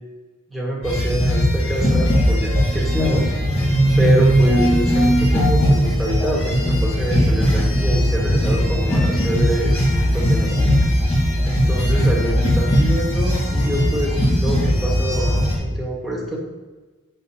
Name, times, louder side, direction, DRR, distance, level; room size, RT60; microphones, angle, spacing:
voice 1, 0.5-3.3 4.0-9.8 10.1-10.8 11.4-16.4, equal, ahead, -6 dB, 1.5 m, -26 dB
sound 1, 0.8-15.6, equal, 30° left, 1.4 m, -18 dB
7.7 x 6.2 x 2.8 m, 1.3 s
head